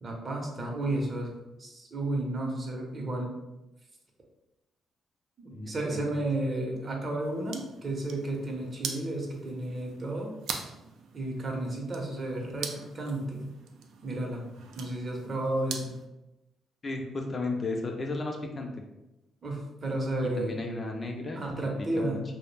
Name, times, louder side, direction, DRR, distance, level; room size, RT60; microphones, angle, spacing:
voice 1, 0.0-3.3 5.4-10.3 11.1-13.5 14.0-14.5 14.7-15.9 19.4-20.6 21.4-22.2, right 1 dB, 40° right, 0 dB, 0.7 m, -32 dB
voice 2, 5.5-6.0 16.8-18.8 20.4-21.4 21.8-22.2, left 2 dB, 35° left, 2 dB, 0.4 m, -34 dB
sound 1, 7.2-16.0, right 6 dB, 75° right, 0.3 m, -43 dB
2.3 x 2.0 x 3.2 m, 0.97 s
cardioid pair, 90°, 0 cm